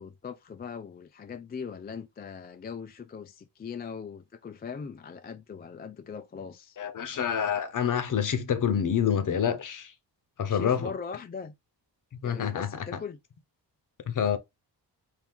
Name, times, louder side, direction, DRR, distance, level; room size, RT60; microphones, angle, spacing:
voice 1, 0.0-6.8 10.5-11.5 12.2-13.2, left 6 dB, 25° left, 0.3 m, -40 dB
voice 2, 6.8-9.9 10.4-10.9 12.2-12.7 14.1-14.4, left 8 dB, 45° left, 0.8 m, -27 dB
4.5 x 2.7 x 3.6 m
cardioid pair, 125°, 42 cm